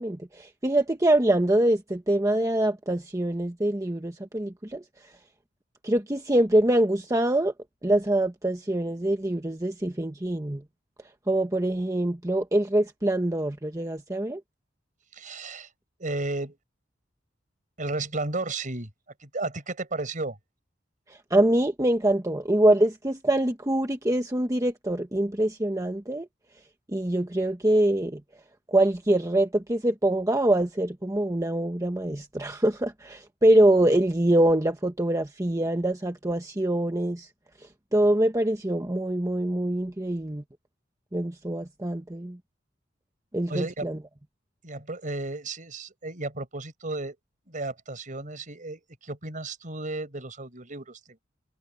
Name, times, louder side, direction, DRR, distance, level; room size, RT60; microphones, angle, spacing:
voice 1, 0.0-4.8 5.8-7.5 7.8-10.6 11.3-14.4 21.3-26.3 26.9-28.2 28.7-37.3 37.9-40.4 41.1-42.4 43.3-44.0, right 1 dB, 20° right, 1.2 m, -24 dB
voice 2, 15.1-15.7 16.0-16.6 17.8-18.9 19.2-20.4 43.5-43.9 44.6-47.2 47.5-51.2, right 2 dB, 45° right, 5.3 m, -33 dB
head